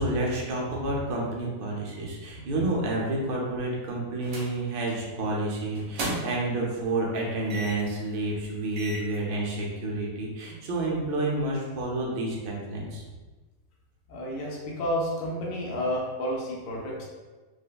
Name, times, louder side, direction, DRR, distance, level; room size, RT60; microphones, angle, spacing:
voice 1, 0.0-13.0, right 2 dB, 55° right, -3 dB, 0.7 m, -29 dB
sound 1, 4.2-4.6 4.9-5.1 5.7-6.5 7.5-7.9 8.4-8.5 8.8-9.2, right 2 dB, 80° right, 1.1 m, -35 dB
voice 2, 14.1-17.0, equal, 70° left, -3 dB, 1.0 m, -30 dB
5.0 x 2.0 x 2.2 m, 1.3 s
omnidirectional pair, 1.5 m